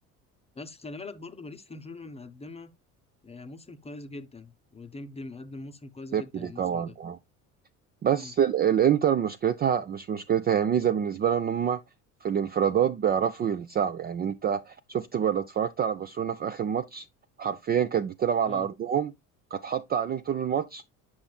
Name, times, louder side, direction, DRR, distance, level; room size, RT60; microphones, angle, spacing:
voice 1, 0.5-2.7 3.2-6.9 8.1-8.3 18.4-18.7, left 2 dB, 15° left, 0.8 m, -42 dB
voice 2, 6.1-7.2 8.0-11.8 12.2-17.1 17.4-19.1 19.5-20.8, right 9 dB, 25° right, 0.4 m, -26 dB
8.6 x 5.8 x 2.3 m
hypercardioid pair, 65°, 43 cm